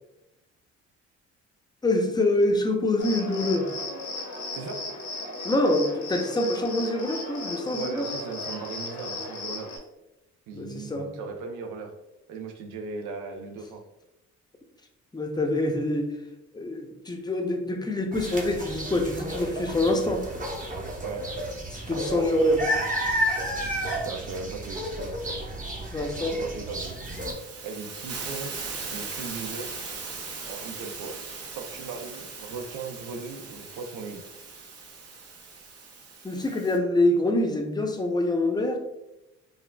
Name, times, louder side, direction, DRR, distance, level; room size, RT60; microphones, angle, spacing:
voice 1, 1.8-3.7 5.4-8.1 10.5-11.1 15.1-16.1 16.5-20.2 21.7-22.6 25.9-26.4 36.2-38.8, left 1 dB, 15° left, 3 dB, 0.6 m, -25 dB
Cricket, 3.0-9.8, left 2 dB, 75° left, 1.0 m, -36 dB
voice 2, 7.7-9.7 10.5-11.9 12.3-13.8 21.0-21.2 21.9-22.0 23.9-25.1 26.3-27.0 27.6-28.5 28.9-29.9 30.5-31.1 31.6-34.2, right 4 dB, 85° right, 3 dB, 0.6 m, -37 dB
sound 1, 18.1-27.3, equal, 25° right, 0.9 m, -31 dB
Hiss, 26.8-36.8, right 4 dB, 50° right, 0.8 m, -39 dB
5.3 x 2.4 x 2.2 m, 0.92 s
cardioid pair, 90°, 30 cm